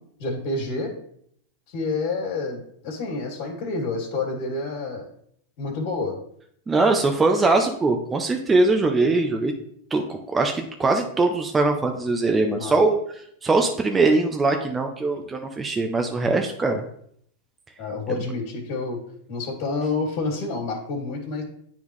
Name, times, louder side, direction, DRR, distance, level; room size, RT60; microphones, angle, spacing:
voice 1, 0.2-0.9 1.7-5.1 5.6-6.2 12.5-12.8 15.1-15.2 17.8-19.0 19.3-21.4, left 3 dB, 55° left, -2 dB, 2.2 m, -28 dB
voice 2, 6.7-9.5 9.9-13.0 13.4-16.8, right 3 dB, 15° right, 4 dB, 0.6 m, -21 dB
9.5 x 3.6 x 3.1 m, 0.68 s
hypercardioid pair, 115°, 0 cm